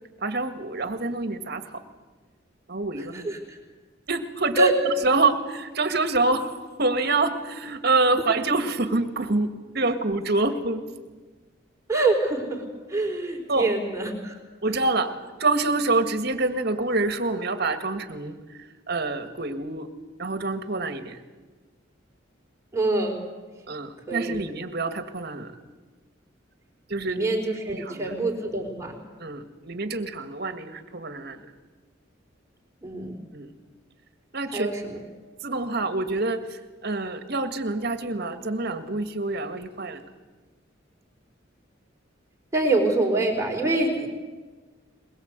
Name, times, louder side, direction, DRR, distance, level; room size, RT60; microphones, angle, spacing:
voice 1, 0.2-1.8 2.7-3.3 4.1-6.5 6.8-10.8 13.5-13.7 14.6-15.1 15.4-19.9 20.2-21.2 23.7-25.5 26.9-27.3 27.7-28.2 29.2-31.4 33.3-33.5 34.3-34.7 35.4-40.0, right 3 dB, 55° right, 9 dB, 1.8 m, -26 dB
voice 2, 3.1-3.6 4.6-4.7 11.9-12.6 12.9-14.4 22.7-23.2 24.1-24.3 27.0-29.0 32.8-33.2 34.5-35.0 42.5-44.1, right 2 dB, 15° right, 0 dB, 4.3 m, -25 dB
22.0 x 21.0 x 8.2 m, 1.3 s
head